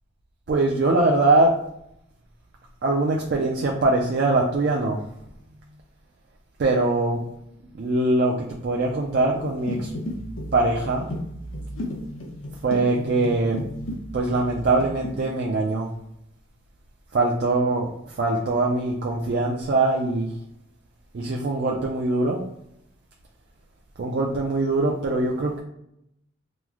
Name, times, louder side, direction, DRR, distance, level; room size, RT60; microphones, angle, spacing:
voice 1, 0.5-1.5 2.8-5.0 6.6-7.2 7.7-9.9 10.5-11.1 12.6-13.6 14.1-15.9 17.1-20.3 21.1-22.4 24.0-25.6, right 2 dB, 55° right, -1 dB, 0.4 m, -22 dB
sound 1, 9.3-14.0 14.3-15.1, left 1 dB, 90° left, 0.7 m, -34 dB
3.0 x 2.0 x 3.5 m, 0.77 s
head